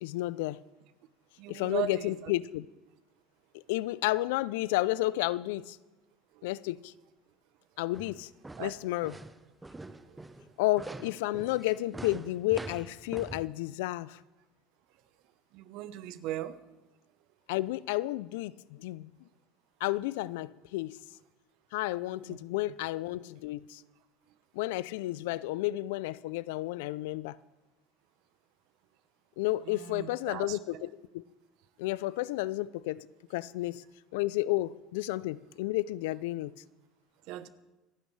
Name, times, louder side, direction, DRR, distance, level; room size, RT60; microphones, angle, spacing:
voice 1, 0.0-0.6 1.5-2.7 3.7-5.8 6.4-6.9 7.8-8.3 8.6-9.2 10.6-14.2 17.5-19.1 19.8-21.0 21.7-23.8 24.5-27.4 29.4-31.2 31.8-33.8 34.1-36.5, left 17 dB, 80° left, 0.4 m, -32 dB
voice 2, 1.4-2.3 6.3-6.5 8.6-8.7 10.0-10.2 15.5-16.6 22.3-22.4 29.6-30.9 37.3-37.5, right 12 dB, 65° right, 0.9 m, -38 dB
sound 1, 7.9-13.5, right 2 dB, 10° right, 0.8 m, -44 dB
27.5 x 9.9 x 3.3 m
supercardioid pair, 90°, 0 cm